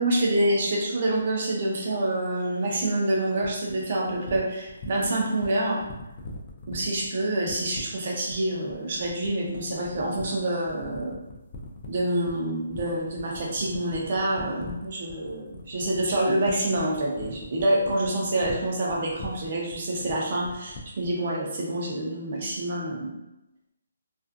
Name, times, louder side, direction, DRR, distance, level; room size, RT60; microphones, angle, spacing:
voice 1, 0.0-5.8 6.7-11.2 11.9-23.1, right 1 dB, 45° right, -2 dB, 0.6 m, -27 dB
sound 1, 3.4-21.2, left 3 dB, 25° left, 0.4 m, -42 dB
2.5 x 2.4 x 2.4 m, 0.95 s
hypercardioid pair, 165°, 0 cm